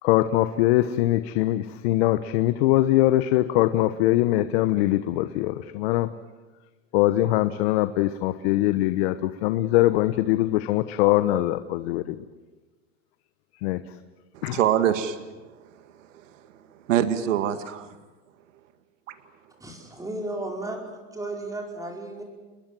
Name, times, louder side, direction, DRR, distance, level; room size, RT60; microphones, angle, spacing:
voice 1, 0.0-6.1 6.9-12.2 13.6-13.8 14.4-14.6, left 15 dB, 55° left, 12 dB, 1.1 m, -22 dB
voice 2, 14.3-15.2 16.9-18.0 19.1-19.2, right 10 dB, 75° right, 10 dB, 2.1 m, -24 dB
voice 3, 19.6-20.8 21.1-22.2, right 2 dB, 10° right, 1 dB, 4.9 m, -34 dB
29.0 x 21.5 x 7.7 m, 1.2 s
supercardioid pair, 135°, 38 cm